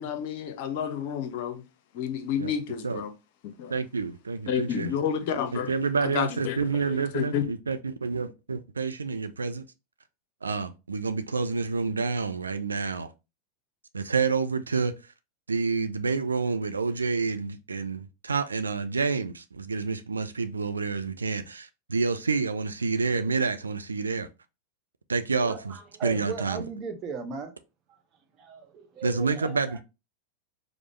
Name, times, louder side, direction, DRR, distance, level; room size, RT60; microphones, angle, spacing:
voice 1, 0.0-1.6 1.9-3.1 3.4-3.7 4.5-5.7 6.0-7.4, left 8 dB, 50° left, 0.6 m, -30 dB
voice 2, 3.7-5.0 5.5-9.7 10.4-13.1 13.9-14.9 15.5-24.3 25.1-25.7 26.0-26.6 29.0-29.8, right 4 dB, 75° right, 0.4 m, -28 dB
voice 3, 25.4-27.6 27.9-28.0 28.4-29.8, right 6 dB, 30° right, 0.8 m, -37 dB
4.9 x 2.0 x 3.1 m
figure-of-eight pair, 90°, 0 cm